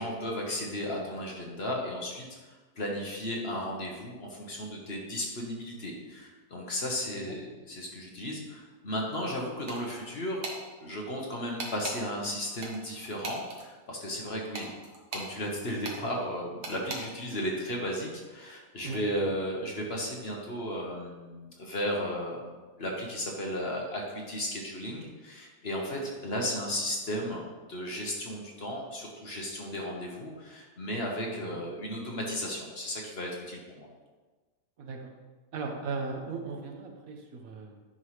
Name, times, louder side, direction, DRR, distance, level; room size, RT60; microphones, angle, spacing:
voice 1, 0.0-10.4 10.8-14.7 15.1-27.4 27.7-33.9, equal, 45° left, -1 dB, 1.2 m, -35 dB
sound 1, 9.7-10.0 10.4-10.6 11.6-12.0 12.6-13.6 14.5-15.3 15.8-16.0 16.6-17.0, right 3 dB, 85° right, 1.7 m, -38 dB
voice 2, 34.8-35.1 35.5-37.8, right 4 dB, 65° right, 3 dB, 1.2 m, -38 dB
9.8 x 5.5 x 3.2 m, 1.3 s
omnidirectional pair, 1.7 m